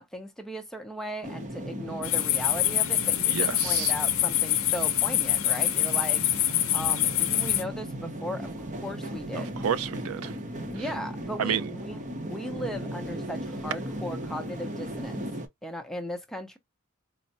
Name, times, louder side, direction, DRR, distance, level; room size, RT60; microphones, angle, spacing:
voice 1, 0.0-6.2 6.7-9.5 10.7-12.0 12.2-15.2 15.6-16.6, equal, ahead, 0.6 m, -37 dB
sound 1, 1.2-15.5, right 1 dB, 35° right, 0.7 m, -37 dB
sound 2, 2.0-7.6, left 13 dB, 85° left, 0.5 m, -25 dB
voice 2, 3.3-3.9 9.4-10.4 11.4-11.7, right 8 dB, 80° right, 0.3 m, -30 dB
4.3 x 2.0 x 2.6 m
head